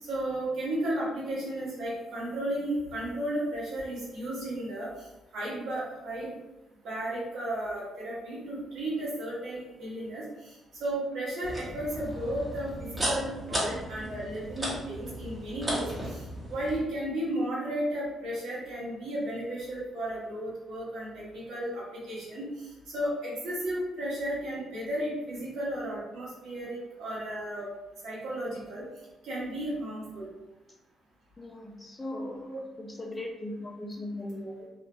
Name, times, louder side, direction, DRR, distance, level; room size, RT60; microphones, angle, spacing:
voice 1, 0.0-4.9 5.3-6.3 6.8-10.2 10.8-16.2 16.5-27.7 28.0-28.8 29.2-30.3, right 1 dB, 75° right, -7 dB, 1.3 m, -34 dB
sound 1, 11.4-16.8, equal, 20° right, 1.2 m, -35 dB
voice 2, 31.4-34.7, left 1 dB, 20° left, -1 dB, 0.4 m, -38 dB
2.8 x 2.4 x 2.3 m, 1.0 s
cardioid pair, 90°, 0 cm